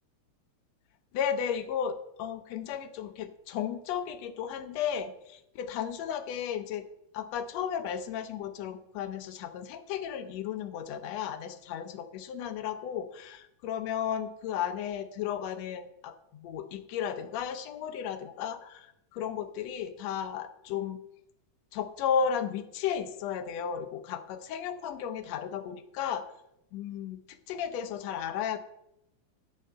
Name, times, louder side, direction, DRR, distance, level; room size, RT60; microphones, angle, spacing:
voice 1, 1.1-6.8 7.1-21.0 21.7-26.2 26.7-28.6, left 8 dB, 70° left, 10 dB, 1.7 m, -34 dB
10.0 x 5.5 x 7.6 m, 0.80 s
omnidirectional pair, 3.6 m